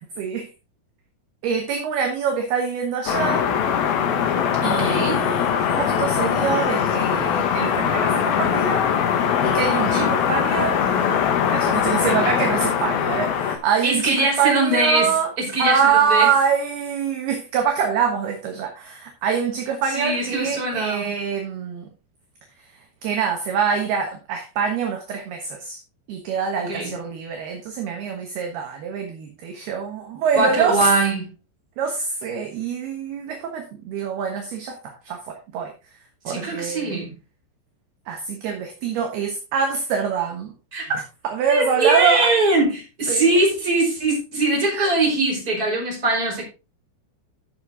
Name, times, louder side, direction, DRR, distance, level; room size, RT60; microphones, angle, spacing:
voice 1, 0.2-0.5 1.4-3.4 4.6-8.9 9.4-10.8 11.5-15.3 15.6-21.9 23.0-25.8 26.1-30.9 31.8-35.7 36.2-37.0 38.1-40.5 41.2-42.3 43.1-43.3 44.7-44.9, right 6 dB, 65° right, 2.9 m, -25 dB
sound 1, 3.1-13.6, left 8 dB, 65° left, 2.7 m, -21 dB
voice 2, 4.6-5.2 9.8-10.1 13.8-16.3 19.9-21.1 26.7-26.9 30.3-31.3 36.3-37.1 40.7-41.0 41.5-46.4, right 2 dB, 20° right, 4.9 m, -22 dB
13.5 x 6.9 x 3.7 m
omnidirectional pair, 5.7 m